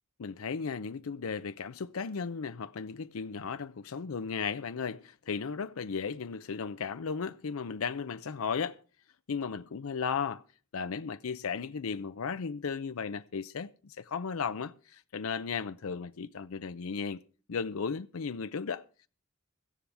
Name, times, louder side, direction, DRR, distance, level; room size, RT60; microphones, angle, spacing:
voice 1, 0.2-8.8 9.3-10.4 10.7-17.2 17.5-18.8, left 5 dB, 75° left, 0.5 m, -35 dB
17.0 x 13.0 x 3.4 m
head